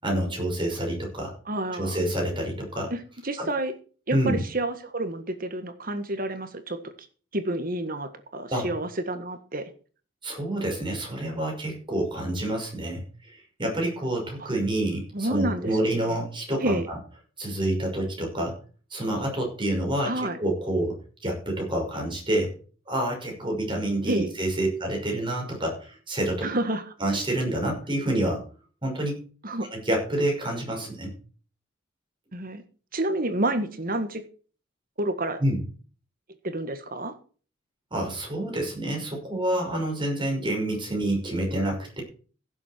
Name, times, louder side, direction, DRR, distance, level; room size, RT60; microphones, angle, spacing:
voice 1, 0.0-1.3 1.7-2.9 3.4-3.5 4.1-4.4 8.5-8.7 10.2-17.0 17.4-18.6 18.9-22.5 22.9-26.4 27.0-28.4 28.8-29.2 29.7-31.1 35.4-35.6 37.9-42.0, right 1 dB, 25° right, 1 dB, 5.8 m, -28 dB
voice 2, 1.5-2.0 2.9-3.0 3.2-3.7 4.1-6.8 7.3-9.7 14.4-14.5 15.1-16.2 16.6-16.9 20.1-20.4 24.1-24.3 26.4-26.8 29.4-29.7 32.3-32.6 32.9-34.2 35.0-35.4 36.4-37.1, right 1 dB, 45° right, 9 dB, 1.6 m, -29 dB
16.0 x 7.7 x 4.5 m, 0.39 s
head